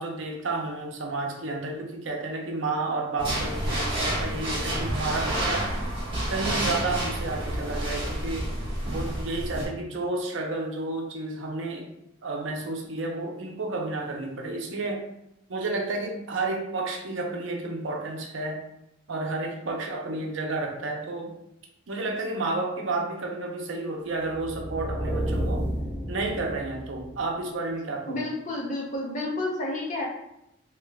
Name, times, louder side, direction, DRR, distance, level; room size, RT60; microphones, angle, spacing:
voice 1, 0.0-5.7 6.3-8.5 8.8-11.9 12.2-15.0 15.5-18.6 19.1-21.4 21.9-25.6 26.1-28.2, right 2 dB, 70° right, 1 dB, 0.6 m, -31 dB
sound 1, 3.2-9.7, right 1 dB, 30° right, 1.0 m, -29 dB
sound 2, 24.3-27.2, right 1 dB, 10° left, 0.5 m, -31 dB
voice 2, 28.1-30.1, left 2 dB, 40° left, -2 dB, 0.7 m, -30 dB
3.3 x 3.0 x 2.3 m, 0.82 s
head